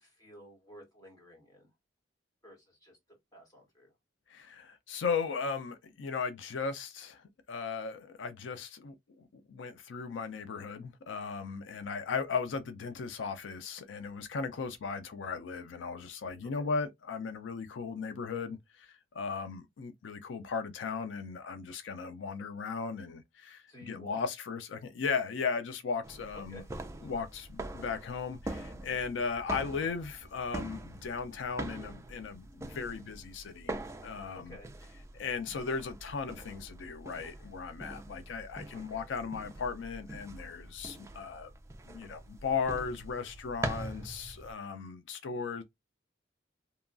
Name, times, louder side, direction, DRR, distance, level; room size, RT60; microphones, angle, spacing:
voice 1, 0.0-1.7 2.4-3.0 3.3-3.9 16.6-16.7 23.7-24.2 26.3-26.7 34.3-34.7 38.7-39.1, equal, 20° left, 1.2 m, -51 dB
voice 2, 4.3-26.6 27.0-33.7 34.0-34.6 35.1-41.5 41.9-45.6, left 5 dB, 85° left, 0.4 m, -37 dB
sound 1, 26.0-44.5, right 2 dB, 15° right, 0.3 m, -43 dB
2.8 x 2.2 x 2.5 m
head